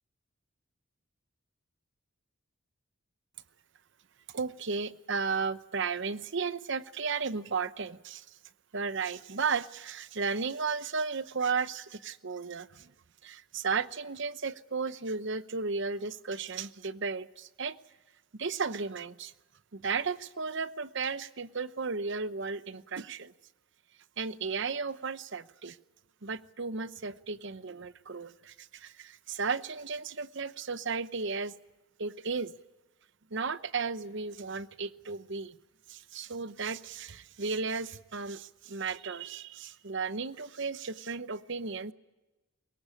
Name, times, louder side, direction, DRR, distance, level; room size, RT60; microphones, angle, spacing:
voice 1, 4.3-8.4 8.7-12.9 13.2-17.8 18.4-19.3 19.7-23.3 24.2-25.8 26.2-31.5 32.0-32.5 33.3-35.6 35.9-41.9, right 5 dB, 55° right, 0.8 m, -34 dB
23.5 x 22.0 x 8.5 m
head